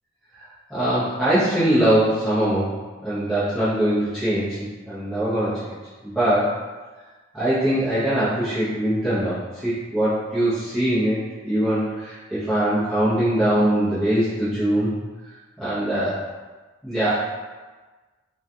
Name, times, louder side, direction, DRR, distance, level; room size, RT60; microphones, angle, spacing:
voice 1, 0.7-2.7 3.0-5.8 6.0-6.5 7.3-11.2 11.4-14.9 15.6-16.2 16.8-17.3, right 1 dB, ahead, -15 dB, 0.7 m, -22 dB
2.3 x 2.3 x 2.7 m, 1.3 s
head